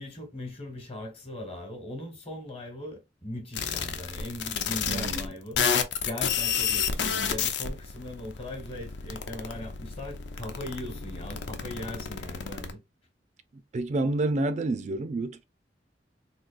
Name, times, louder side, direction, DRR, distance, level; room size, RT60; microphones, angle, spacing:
voice 1, 0.0-5.6 6.0-12.8, left 1 dB, 35° left, 1.2 m, -39 dB
sound 1, 3.5-5.3 5.6-12.7, left 7 dB, 75° left, 0.5 m, -30 dB
voice 2, 4.9-5.4 13.7-15.4, right 2 dB, 40° right, 0.4 m, -29 dB
3.8 x 2.7 x 2.4 m
head